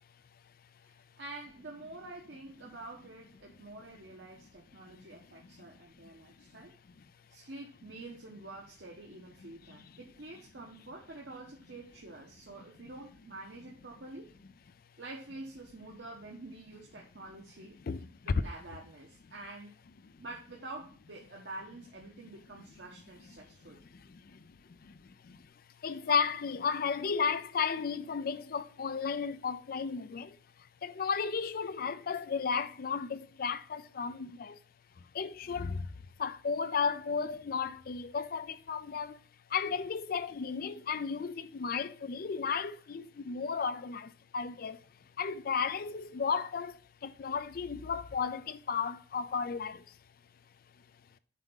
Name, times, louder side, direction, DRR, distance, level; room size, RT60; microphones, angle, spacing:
voice 1, 0.8-6.7 7.3-14.3 15.0-17.8 18.2-19.7 20.2-23.8, right 2 dB, 75° right, 1.2 m, -47 dB
voice 2, 6.2-6.7 9.4-9.9 17.8-18.4 23.4-25.5 25.8-30.4 30.8-34.6 35.0-35.9 36.2-39.2 39.5-44.8 45.2-50.0, left 5 dB, 55° left, 0.4 m, -34 dB
7.4 x 3.5 x 5.5 m
head